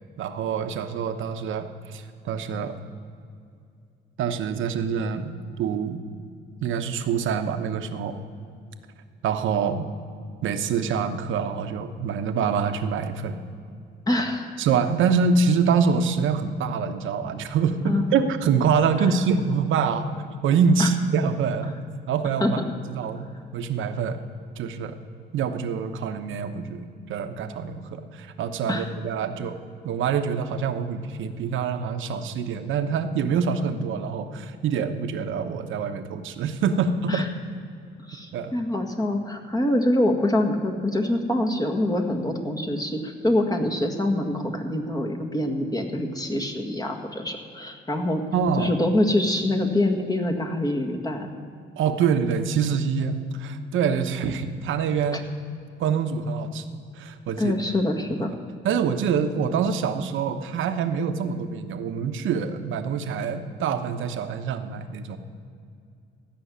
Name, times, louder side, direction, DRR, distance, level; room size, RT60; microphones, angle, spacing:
voice 1, 0.2-2.8 4.2-6.0 6.6-8.2 9.2-9.9 10.4-13.4 14.6-20.0 20.4-21.7 22.1-22.6 22.9-23.3 23.5-24.2 24.6-24.9 25.3-29.6 29.8-37.2 38.3-38.5 48.3-48.7 51.8-55.3 55.8-57.5 58.6-65.2, right 6 dB, 80° right, 7 dB, 1.0 m, -25 dB
voice 2, 14.1-14.5 17.9-18.1 19.0-19.1 20.8-20.9 22.4-22.6 28.7-28.9 37.1-37.3 38.1-48.2 48.6-51.3 55.1-55.2 57.4-58.3, left 1 dB, 20° left, 3 dB, 1.7 m, -25 dB
16.0 x 6.3 x 9.6 m, 2.4 s
cardioid pair, 90°, 20 cm